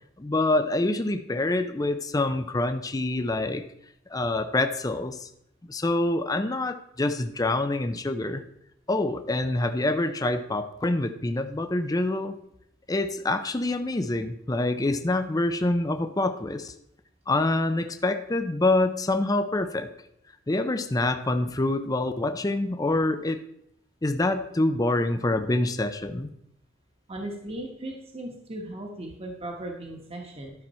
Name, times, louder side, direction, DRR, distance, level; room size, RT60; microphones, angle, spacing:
voice 1, 0.2-3.7 4.1-5.3 5.7-8.4 8.9-12.4 12.9-16.7 17.3-19.9 20.5-23.4 24.0-26.3, left 2 dB, 20° left, 8 dB, 0.5 m, -26 dB
voice 2, 27.1-30.5, right 1 dB, 30° right, 1 dB, 1.3 m, -37 dB
12.0 x 6.0 x 4.3 m, 0.77 s
head